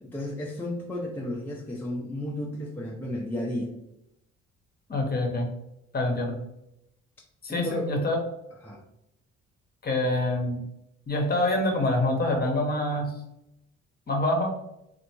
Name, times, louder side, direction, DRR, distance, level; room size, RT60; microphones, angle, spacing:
voice 1, 0.0-3.8 7.5-7.9 8.6-8.8, left 1 dB, 5° left, -2 dB, 0.5 m, -33 dB
voice 2, 4.9-5.5 5.9-6.4 7.4-8.2 9.8-10.6 11.1-13.1 14.1-14.5, left 1 dB, 35° left, 2 dB, 0.8 m, -26 dB
3.3 x 2.5 x 2.8 m, 0.84 s
cardioid pair, 90°, 29 cm